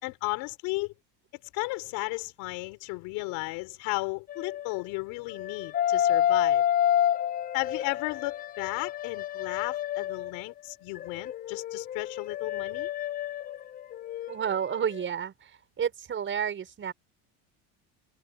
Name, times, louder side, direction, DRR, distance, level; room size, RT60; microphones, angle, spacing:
voice 1, 0.0-0.9 1.5-6.6 7.5-12.9, left 24 dB, 75° left, 3.9 m, -34 dB
sound 1, 4.3-4.8 5.3-10.4 11.0-14.5 14.8-15.0, left 10 dB, 25° left, 0.4 m, -29 dB
voice 2, 14.3-16.9, right 8 dB, 35° right, 5.8 m, -31 dB
cardioid pair, 125°, 35 cm